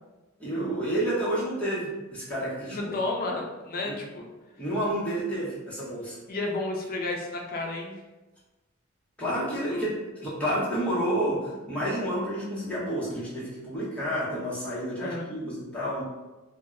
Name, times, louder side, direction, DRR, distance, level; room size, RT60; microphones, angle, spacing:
voice 1, 0.4-2.9 3.8-3.9 4.6-6.2 9.2-16.0, right 1 dB, 5° left, -8 dB, 0.7 m, -30 dB
voice 2, 2.7-4.3 6.3-8.0 9.7-9.9 15.0-15.3, left 2 dB, 40° left, 1 dB, 0.4 m, -31 dB
2.1 x 2.0 x 3.5 m, 1.1 s
head